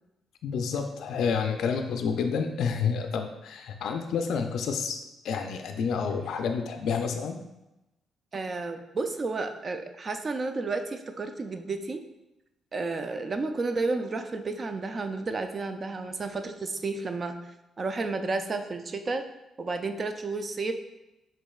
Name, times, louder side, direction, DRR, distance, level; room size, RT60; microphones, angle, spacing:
voice 1, 0.4-7.4, left 6 dB, 75° left, 5 dB, 0.3 m, -29 dB
voice 2, 8.3-12.0 12.7-17.3 17.8-19.2 19.6-20.7, right 3 dB, 35° right, 7 dB, 0.4 m, -31 dB
5.1 x 3.6 x 2.3 m, 0.95 s
cardioid pair, 90°, 0 cm